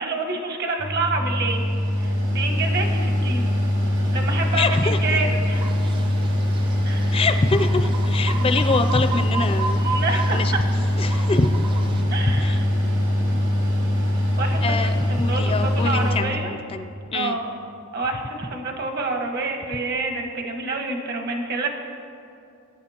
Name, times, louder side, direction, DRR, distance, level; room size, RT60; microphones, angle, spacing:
voice 1, 0.0-1.6 2.0-3.6 4.1-5.8 6.8-7.2 9.7-10.6 12.1-12.7 14.4-16.5 17.1-17.5 17.9-21.7, right 3 dB, 50° right, 2 dB, 1.4 m, -28 dB
Mechanical fan, 0.8-16.2, left 1 dB, 75° right, 2.7 m, -22 dB
voice 2, 4.6-5.0 7.1-10.5 11.0-11.5 12.3-12.6 14.6-16.3 16.7-17.4, left 3 dB, 25° left, 8 dB, 0.4 m, -25 dB
sound 1, 5.5-12.0, right 4 dB, 25° right, 0.5 m, -34 dB
20.0 x 9.4 x 2.9 m, 2.5 s
head